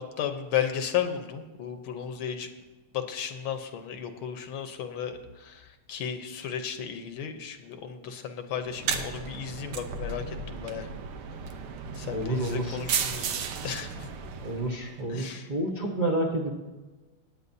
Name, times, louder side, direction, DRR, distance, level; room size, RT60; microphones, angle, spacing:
voice 1, 0.0-2.5 2.9-10.9 11.9-14.1 15.1-15.5, left 8 dB, 75° left, 7 dB, 1.7 m, -34 dB
sound 1, 8.6-15.0, right 6 dB, 85° right, 1.7 m, -34 dB
voice 2, 12.1-12.8 14.4-16.5, right 1 dB, 30° right, -2 dB, 0.8 m, -29 dB
19.0 x 8.7 x 2.7 m, 1.2 s
omnidirectional pair, 2.3 m